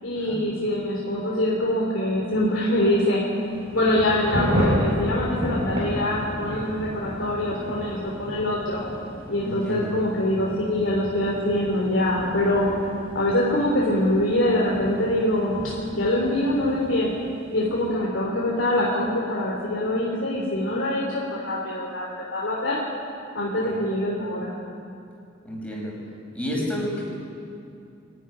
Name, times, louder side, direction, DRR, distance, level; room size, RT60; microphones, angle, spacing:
voice 1, 0.0-3.2 3.7-8.8 9.3-12.7 13.1-15.6 15.9-17.1 17.5-22.8 23.3-24.5, left 1 dB, 75° left, -4 dB, 3.4 m, -24 dB
Thunder / Rain, 3.4-17.9, equal, 35° right, 6.2 m, -32 dB
voice 2, 9.4-9.9 23.6-23.8 25.4-25.9 26.3-27.0, equal, 5° left, -4 dB, 6.1 m, -30 dB
24.0 x 13.0 x 10.0 m, 2.5 s
head